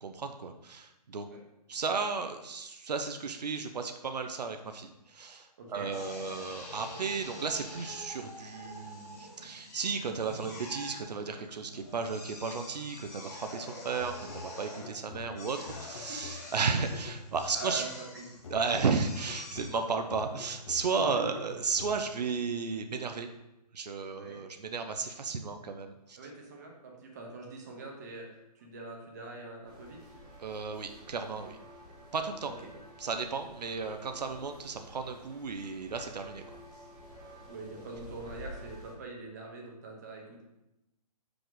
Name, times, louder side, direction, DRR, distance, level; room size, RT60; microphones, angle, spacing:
voice 1, 0.0-1.3 1.7-17.9 18.5-23.3 23.7-26.2 30.4-31.6 32.1-32.5 33.0-36.4, right 5 dB, 75° right, 6 dB, 0.7 m, -34 dB
voice 2, 5.6-5.9 17.5-17.9 18.1-18.3 24.1-24.4 26.2-28.3 28.5-30.0 32.6-32.7 37.5-40.4, right 3 dB, 25° right, 0 dB, 0.9 m, -44 dB
Drill, 5.9-21.2, left 1 dB, 25° left, 1.2 m, -47 dB
sound 1, 14.0-17.9 18.4-22.3, left 4 dB, 45° left, 0.7 m, -48 dB
sound 2, 29.6-38.9, equal, 5° right, 0.4 m, -50 dB
6.4 x 4.9 x 3.9 m, 0.92 s
hypercardioid pair, 170°, 21 cm